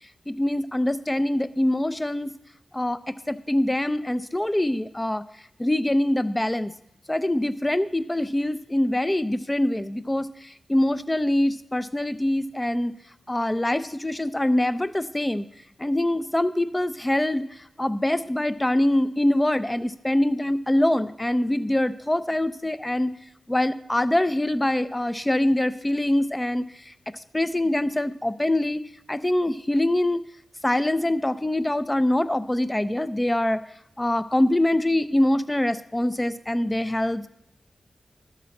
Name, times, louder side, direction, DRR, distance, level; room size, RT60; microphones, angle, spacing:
voice 1, 0.3-2.3 2.7-3.0 3.3-5.2 5.6-6.7 7.1-10.3 10.7-12.9 13.3-15.5 15.8-17.5 17.8-23.1 23.5-26.6 27.3-28.8 29.1-30.2 30.6-33.6 34.0-37.3, left 1 dB, 15° left, 13 dB, 0.4 m, -24 dB
12.5 x 4.2 x 6.9 m, 0.78 s
wide cardioid pair, 130°, 0 cm